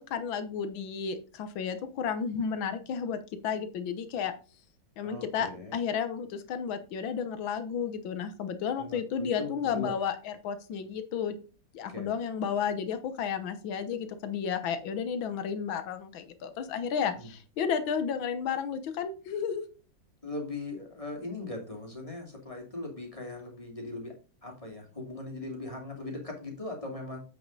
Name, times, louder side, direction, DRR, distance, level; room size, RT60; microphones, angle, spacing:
voice 1, 0.0-3.2 3.4-4.3 5.0-11.4 11.7-19.6, left 7 dB, 80° left, 10 dB, 1.8 m, -32 dB
voice 2, 5.0-5.8 8.8-9.9 11.9-12.1 17.1-17.3 20.2-24.1 24.4-27.2, left 2 dB, 15° left, 0 dB, 2.6 m, -39 dB
8.2 x 6.6 x 3.9 m, 0.34 s
omnidirectional pair, 2.2 m